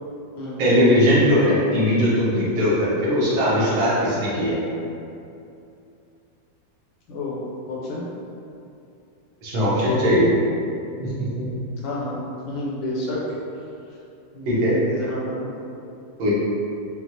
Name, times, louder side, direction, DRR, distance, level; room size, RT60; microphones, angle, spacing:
voice 1, 0.6-4.6 9.4-10.3 11.0-11.5 14.5-14.7 16.2-16.3, equal, 85° right, -8 dB, 1.8 m, -19 dB
voice 2, 7.1-7.4 7.7-8.1 11.8-12.2 12.5-13.3 14.3-15.5 16.2-16.3, left 1 dB, 75° left, -6 dB, 1.5 m, -30 dB
6.2 x 2.1 x 2.8 m, 2.6 s
omnidirectional pair, 2.1 m